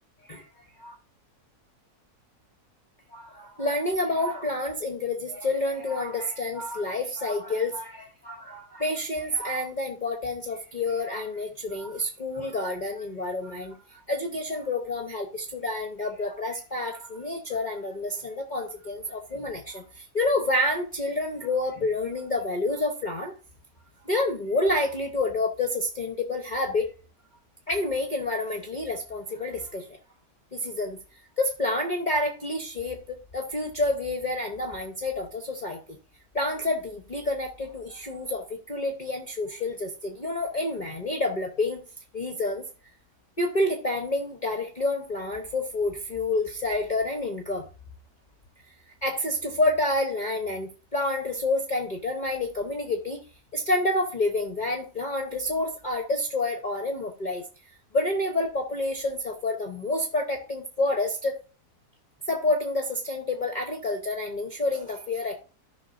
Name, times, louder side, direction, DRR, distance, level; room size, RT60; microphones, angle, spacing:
voice 1, 3.1-23.3 24.0-26.9 27.7-30.0 30.5-31.0 31.4-36.0 36.3-41.8 42.1-42.7 43.4-47.6 49.0-53.2 53.5-57.5 57.9-61.4 62.3-65.4, left 2 dB, 35° left, 1.0 m, -28 dB
14.5 x 5.7 x 2.6 m
omnidirectional pair, 1.7 m